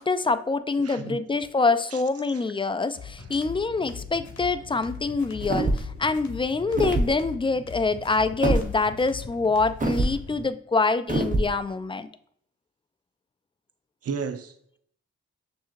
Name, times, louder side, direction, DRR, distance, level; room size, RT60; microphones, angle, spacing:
voice 1, 0.0-12.1, left 3 dB, 20° left, 0.3 m, -25 dB
voice 2, 0.8-1.2 14.0-14.8, right 5 dB, 55° right, 0.6 m, -33 dB
sound 1, 2.9-10.5, left 5 dB, 70° left, 0.9 m, -41 dB
sound 2, 5.4-6.0 6.7-7.1 8.4-8.7 9.8-10.2 11.1-11.5, right 2 dB, 25° right, 0.9 m, -24 dB
6.1 x 2.9 x 2.5 m
cardioid pair, 55°, 29 cm